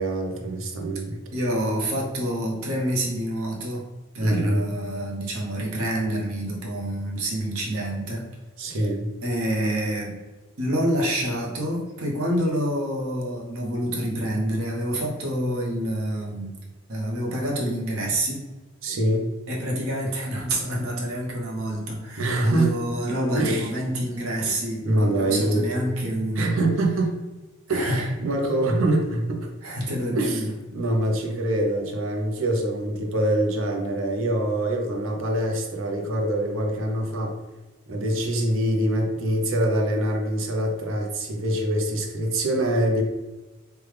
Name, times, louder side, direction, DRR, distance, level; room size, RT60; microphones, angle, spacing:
voice 1, 0.0-1.2 4.2-4.7 8.6-9.1 18.8-19.2 22.2-22.7 23.3-23.7 24.4-24.6 24.8-25.6 26.4-27.2 27.7-29.5 30.1-30.5 30.7-37.3 37.9-43.0, right 1 dB, 70° right, 2 dB, 0.6 m, -24 dB
voice 2, 1.3-3.8 4.1-8.2 8.7-8.9 9.2-10.1 10.6-16.5 16.9-18.4 19.5-26.5 27.7-28.1 29.6-30.4, right 1 dB, 90° right, -2 dB, 0.9 m, -27 dB
3.3 x 2.3 x 3.2 m, 1.2 s
head